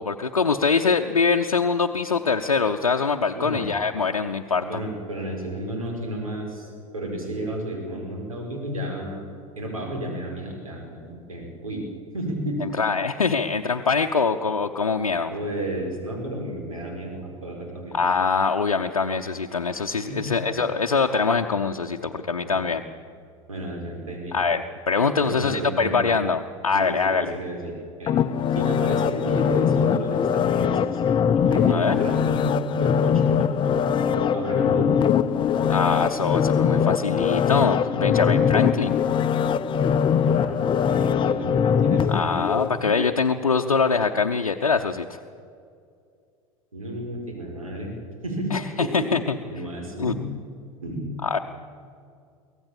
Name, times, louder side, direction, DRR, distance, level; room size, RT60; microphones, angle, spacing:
voice 1, 0.0-4.8 12.8-15.3 17.9-22.8 24.3-27.4 31.7-32.0 35.7-39.0 42.1-45.2 48.5-49.2 50.0-50.1 51.2-51.4, left 5 dB, 80° left, 4 dB, 0.7 m, -23 dB
voice 2, 4.6-9.3 9.6-11.8 12.1-12.6 15.3-18.0 20.1-20.3 22.4-22.8 23.5-24.4 25.2-26.1 26.7-27.7 28.0-28.1 28.5-31.0 31.5-35.1 40.3-42.4 46.7-47.9 48.2-48.5 48.8-49.1 49.5-50.2 50.8-51.1, right 1 dB, 80° right, 0 dB, 5.2 m, -32 dB
sound 1, 28.1-43.1 43.5-43.6, left 7 dB, 30° left, 0.7 m, -22 dB
23.5 x 17.5 x 7.3 m, 2.3 s
figure-of-eight pair, 75°, 18 cm